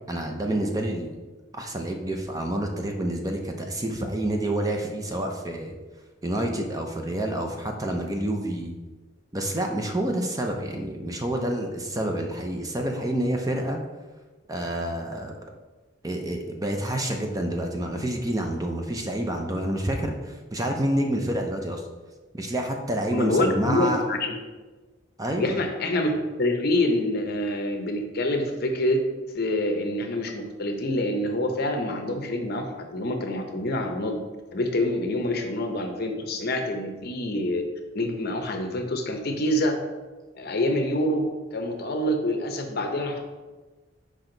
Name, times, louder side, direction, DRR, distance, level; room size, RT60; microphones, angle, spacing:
voice 1, 0.1-1.2 1.5-5.8 6.2-8.8 9.3-13.8 14.5-15.4 16.0-21.8 22.3-24.0 25.2-25.5, right 1 dB, 20° right, 2 dB, 0.6 m, -28 dB
voice 2, 23.1-24.4 25.4-26.1 26.4-29.0 29.3-34.2 34.5-37.6 37.9-39.8 40.3-43.2, left 1 dB, 55° left, 4 dB, 0.8 m, -26 dB
6.3 x 4.8 x 3.9 m, 1.3 s
head